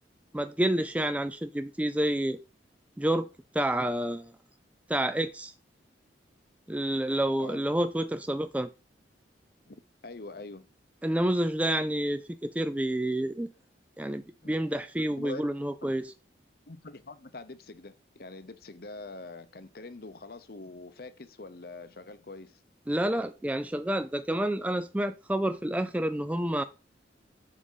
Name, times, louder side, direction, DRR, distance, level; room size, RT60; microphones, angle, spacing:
voice 1, 0.3-2.4 3.0-3.3 3.5-4.3 4.9-5.5 6.7-8.7 11.0-13.5 14.0-16.0 22.9-26.6, right 1 dB, 10° right, 0.3 m, -29 dB
voice 2, 9.7-10.7 14.4-14.5 15.2-15.9 16.7-22.6, left 2 dB, 55° left, 0.8 m, -44 dB
7.4 x 5.0 x 5.6 m
head